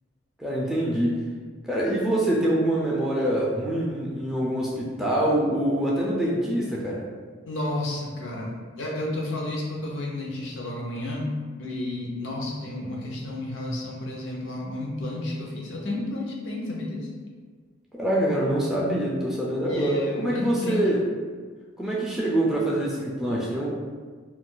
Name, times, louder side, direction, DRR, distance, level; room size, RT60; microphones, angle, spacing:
voice 1, 0.4-1.3 1.6-7.0 17.9-21.0 21.8-23.7, right 1 dB, 5° right, -5 dB, 0.3 m, -25 dB
voice 2, 7.5-11.3 11.6-17.1 19.7-20.9, left 1 dB, 75° left, -2 dB, 0.6 m, -31 dB
2.3 x 2.2 x 3.7 m, 1.5 s
head